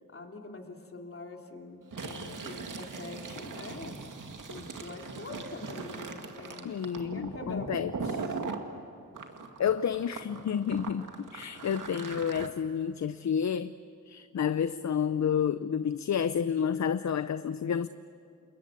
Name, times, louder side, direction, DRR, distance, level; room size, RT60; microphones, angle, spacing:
voice 1, 0.1-4.0 4.4-8.3, left 3 dB, 45° left, 2 dB, 3.1 m, -44 dB
Fill (with liquid), 1.8-8.6 9.1-12.5, right 4 dB, 75° right, 2.0 m, -40 dB
voice 2, 6.6-8.2 9.6-13.7 14.1-17.9, left 8 dB, 60° left, 13 dB, 0.6 m, -30 dB
28.5 x 21.5 x 8.4 m, 2.5 s
cardioid pair, 75°, 32 cm